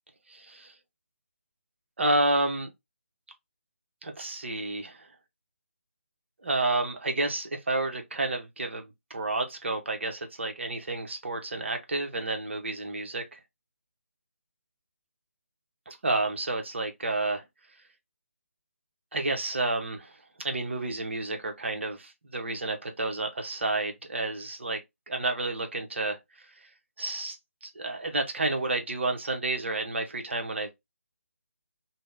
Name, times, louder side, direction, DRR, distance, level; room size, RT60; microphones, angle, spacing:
voice 1, 0.3-0.7 2.0-2.7 4.0-5.1 6.4-13.4 15.9-17.4 19.1-24.8 25.1-26.5 27.0-27.4 27.6-30.7, right 2 dB, 55° right, 0.8 m, -30 dB
2.7 x 2.0 x 3.3 m
figure-of-eight pair, 150°, 8 cm